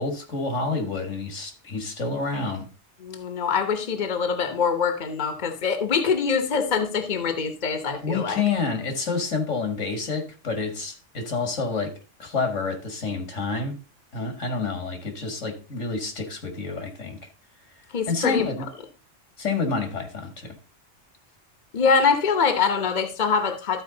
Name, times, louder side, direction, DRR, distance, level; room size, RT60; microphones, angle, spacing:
voice 1, 0.0-2.7 8.0-11.9 12.2-13.8 14.1-17.2 18.1-18.7 19.4-20.6, left 4 dB, 85° left, 2.2 m, -28 dB
voice 2, 3.0-8.4 17.9-18.5 21.7-23.8, left 5 dB, 40° left, 1.1 m, -24 dB
13.5 x 4.5 x 3.9 m
omnidirectional pair, 1.2 m